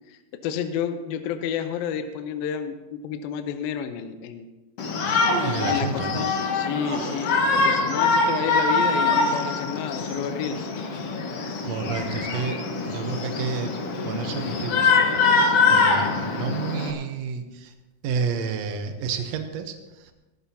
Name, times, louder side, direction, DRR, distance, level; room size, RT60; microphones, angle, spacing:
voice 1, 0.1-4.5 5.7-10.7, left 8 dB, 80° left, 8 dB, 2.5 m, -30 dB
Shout, 4.8-16.9, left 4 dB, 60° left, 1.6 m, -24 dB
Human voice, 4.8-5.9 6.7-7.4 8.9-9.6, right 2 dB, 45° right, 5.4 m, -33 dB
voice 2, 5.4-6.3 11.6-13.7 14.0-14.9 15.7-17.7 18.0-19.8, right 6 dB, 75° right, 7 dB, 1.5 m, -30 dB
18.5 x 15.0 x 2.8 m, 1.1 s
omnidirectional pair, 4.4 m